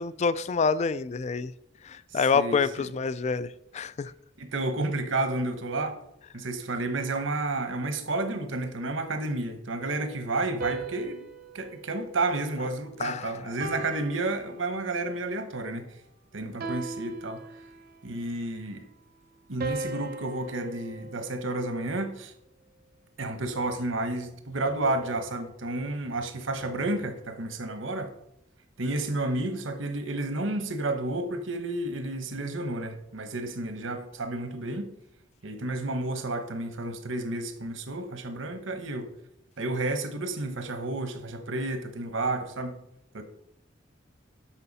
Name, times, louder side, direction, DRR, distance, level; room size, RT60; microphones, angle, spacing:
voice 1, 0.0-1.5 1.8-4.1 13.0-13.4, left 5 dB, 35° left, 0.3 m, -27 dB
voice 2, 2.1-2.9 4.4-6.0 6.3-11.2 11.5-16.0 16.3-17.5 18.0-18.8 19.5-22.3 23.2-28.1 28.8-34.9 35.4-39.1 39.6-42.8 43.1-43.2, right 2 dB, 80° right, 1.1 m, -31 dB
sound 1, 10.6-13.0 13.6-15.1 16.6-18.1 19.6-21.9, right 3 dB, 50° right, 0.7 m, -39 dB
12.0 x 5.7 x 4.1 m
head